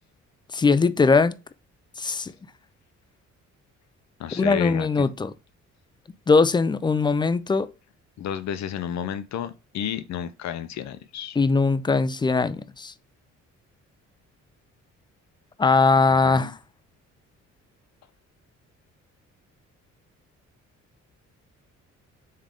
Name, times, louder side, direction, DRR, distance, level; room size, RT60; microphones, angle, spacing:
voice 1, 0.5-1.3 2.0-2.3 4.4-5.3 6.3-7.7 11.4-12.9 15.6-16.6, left 4 dB, 15° left, 0.3 m, -20 dB
voice 2, 4.2-5.1 8.2-11.4 16.1-16.5, left 9 dB, 65° left, 0.6 m, -32 dB
3.7 x 3.2 x 3.5 m
cardioid pair, 90°, 30 cm